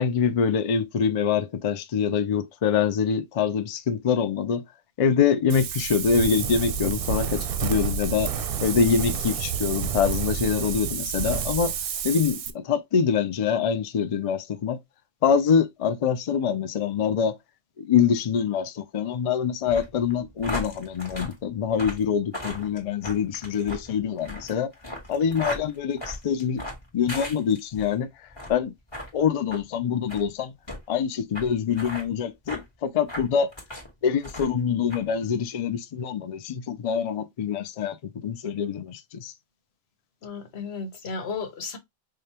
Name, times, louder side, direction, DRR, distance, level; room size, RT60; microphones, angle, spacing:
voice 1, 0.0-4.6 5.0-8.3 8.6-11.7 12.0-14.8 15.2-17.4 17.8-24.7 25.1-26.6 26.9-28.1 28.5-28.7 29.1-30.5 30.9-33.5 34.0-38.0 38.2-39.3, left 7 dB, 50° left, 0.4 m, -25 dB
Wind, 5.5-12.5, right 7 dB, 65° right, 0.7 m, -29 dB
sound 1, 19.7-27.9 28.3-28.6 28.9-29.1 29.5-29.6 30.1-30.2 30.7-30.8 31.3-31.5 31.7-32.0 32.5-32.6 33.1-33.9 34.2-34.6 34.9-35.0, left 1 dB, 25° left, 1.4 m, -36 dB
voice 2, 40.2-41.8, left 4 dB, 85° left, 1.1 m, -34 dB
4.9 x 2.3 x 2.8 m
omnidirectional pair, 1.1 m